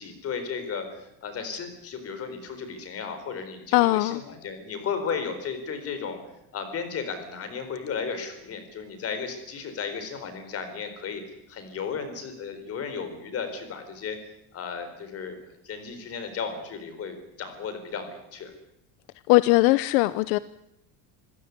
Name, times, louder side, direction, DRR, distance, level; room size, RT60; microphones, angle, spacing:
voice 1, 0.0-6.2 6.5-11.2 11.5-14.2 14.5-15.4 15.6-18.5, left 6 dB, 30° left, 4.3 m, -34 dB
voice 2, 3.7-4.2 19.3-20.4, left 20 dB, 70° left, 0.8 m, -20 dB
26.0 x 16.0 x 9.6 m
cardioid pair, 170°, 46 cm